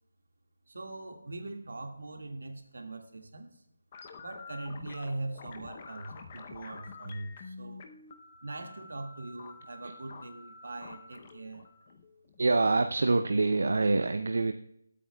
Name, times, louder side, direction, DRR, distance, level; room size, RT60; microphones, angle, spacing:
voice 1, 0.7-3.6 4.2-7.9 8.4-11.7, right 2 dB, 75° right, 4 dB, 1.8 m, -41 dB
sound 1, 3.9-12.8, left 4 dB, 20° left, 0.6 m, -49 dB
voice 2, 12.4-14.5, right 3 dB, 55° right, 7 dB, 0.6 m, -25 dB
22.5 x 8.5 x 2.3 m, 0.76 s
hypercardioid pair, 180°, 0 cm